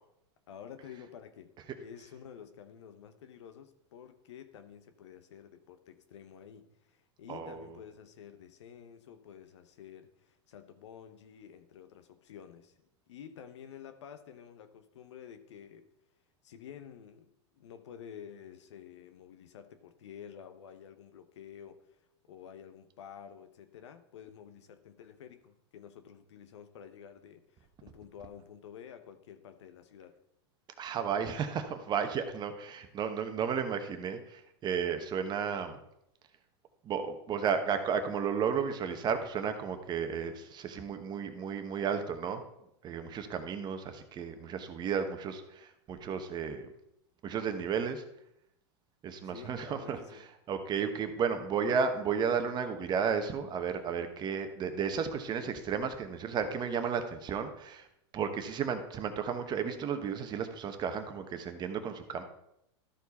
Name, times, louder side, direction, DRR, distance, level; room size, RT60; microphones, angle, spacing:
voice 1, 0.5-1.5 1.8-12.7 13.1-15.8 16.4-30.1 49.3-50.2, left 8 dB, 80° left, 9 dB, 0.9 m, -50 dB
voice 2, 7.3-7.7 30.8-35.8 36.8-42.4 42.8-46.7 47.2-48.0 49.0-57.9 58.1-62.2, right 6 dB, 30° right, 8 dB, 1.0 m, -33 dB
12.5 x 4.6 x 4.2 m, 0.79 s
hypercardioid pair, 120°, 15 cm